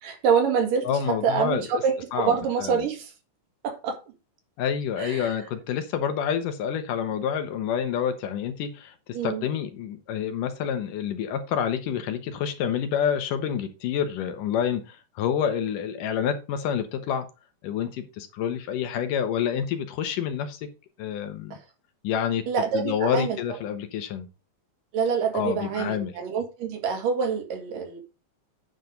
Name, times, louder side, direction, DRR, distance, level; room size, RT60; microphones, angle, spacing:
voice 1, 0.0-3.1 3.6-4.0 5.0-5.3 9.1-9.5 21.5-21.6 22.5-23.4 24.9-28.0, right 6 dB, 85° right, 3.5 m, -26 dB
voice 2, 0.8-1.8 2.1-2.3 2.6-2.9 4.6-17.3 17.6-20.6 21.0-21.6 22.0-22.5 22.7-24.3 25.3-26.1, left 8 dB, 80° left, 2.8 m, -28 dB
9.4 x 5.0 x 5.2 m
omnidirectional pair, 3.7 m